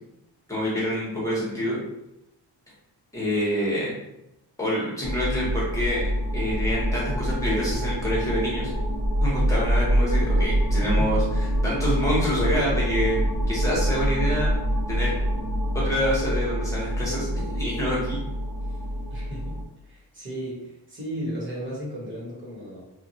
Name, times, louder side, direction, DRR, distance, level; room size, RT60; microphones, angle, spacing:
voice 1, 0.5-1.8 3.1-3.9 4.6-6.1 6.3-8.7 9.2-14.5 14.9-15.1 15.7-18.2, equal, 5° left, -6 dB, 1.1 m, -27 dB
sound 1, 5.0-19.6, equal, 75° right, 1.3 m, -25 dB
voice 2, 10.8-11.4 19.1-19.5 19.8-22.8, equal, 25° right, -6 dB, 1.2 m, -35 dB
2.8 x 2.5 x 2.8 m, 0.87 s
wide cardioid pair, 145°, 43 cm